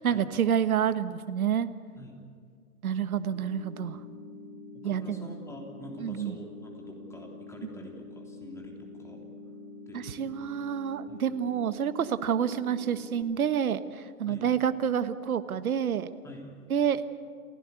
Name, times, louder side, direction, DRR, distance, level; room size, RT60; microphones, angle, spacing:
voice 1, 0.0-1.7 2.8-4.0 4.8-5.3 6.0-6.4 7.6-7.7 9.9-16.1 16.7-17.1, right 8 dB, 70° right, 12 dB, 1.4 m, -28 dB
sound 1, 3.2-13.2, left 3 dB, 25° left, 5.6 m, -46 dB
voice 2, 4.7-9.2 9.9-10.0 11.1-11.2 14.3-14.5 16.2-16.6, left 1 dB, 5° left, 0 dB, 3.3 m, -46 dB
29.5 x 16.5 x 8.4 m, 2.1 s
hypercardioid pair, 130°, 45 cm